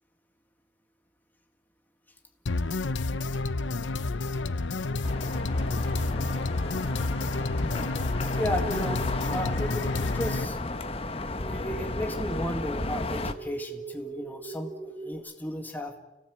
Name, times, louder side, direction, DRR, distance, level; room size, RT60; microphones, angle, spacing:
sound 1, 2.5-10.5, left 3 dB, 90° left, 0.8 m, -30 dB
sound 2, 5.0-13.3, left 2 dB, 30° left, 1.1 m, -33 dB
voice 1, 8.4-10.6 11.5-15.9, equal, 10° left, 3 dB, 1.9 m, -34 dB
sound 3, 10.2-15.1, right 3 dB, 65° left, 7.7 m, -43 dB
29.0 x 18.5 x 8.4 m, 1.1 s
head